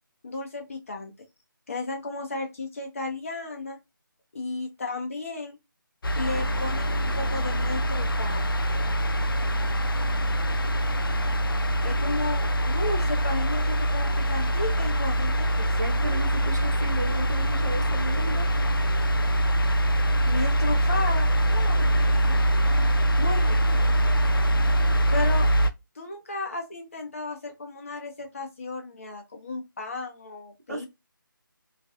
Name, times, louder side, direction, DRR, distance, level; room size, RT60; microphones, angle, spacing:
voice 1, 0.2-1.1 1.7-3.8 4.3-5.6 6.2-8.5 11.8-15.5 20.3-22.4 23.2-23.8 25.1-25.5 26.0-30.9, left 3 dB, 40° left, 0.7 m, -34 dB
sound 1, 6.0-25.7, right 1 dB, 85° left, 0.4 m, -24 dB
voice 2, 15.8-18.5 30.7-30.9, right 2 dB, 55° right, 0.7 m, -34 dB
2.4 x 2.3 x 2.5 m
figure-of-eight pair, 160°, 12 cm